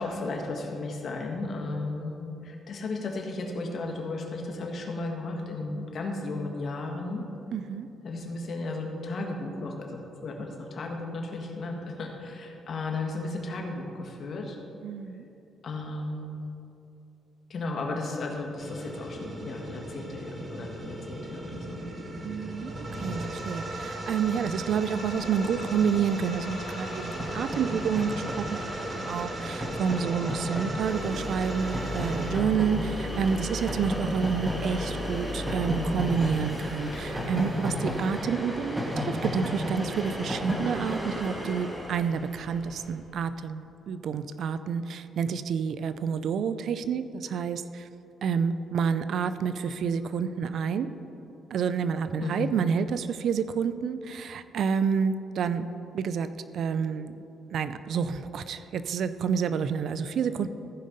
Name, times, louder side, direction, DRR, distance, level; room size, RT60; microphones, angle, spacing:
voice 1, 0.0-7.2 8.0-14.6 15.6-16.4 17.5-21.9 52.2-52.6, left 2 dB, 55° left, 2 dB, 1.6 m, -34 dB
voice 2, 7.5-7.9 14.8-15.2 22.2-22.7 23.0-47.9 48.2-50.9 51.5-55.7 55.9-56.3 56.5-57.2 57.5-60.5, right 6 dB, 65° right, 12 dB, 0.4 m, -29 dB
sound 1, 18.6-32.3, right 1 dB, 35° right, 1.6 m, -37 dB
Train, 24.2-24.3 24.5-42.9, equal, 10° right, 1.7 m, -34 dB
sound 2, 30.8-38.2, left 2 dB, 75° left, 1.0 m, -38 dB
15.0 x 5.2 x 5.4 m, 2.8 s
cardioid pair, 90°, 0 cm